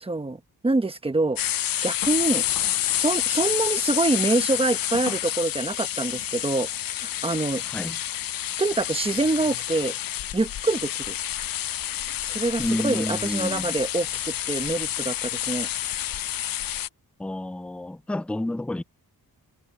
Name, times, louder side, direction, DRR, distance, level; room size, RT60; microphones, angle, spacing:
voice 1, 0.0-1.4 1.8-2.4 2.9-7.6 8.6-9.9 10.3-11.1 12.3-15.7, right 2 dB, 15° right, 1.1 m, -25 dB
sound 1, 1.4-16.9, left 12 dB, 65° left, 0.6 m, -29 dB
voice 2, 7.6-8.0 12.6-13.8 17.2-18.8, left 1 dB, 5° left, 0.5 m, -30 dB
wide cardioid pair, 125°, 38 cm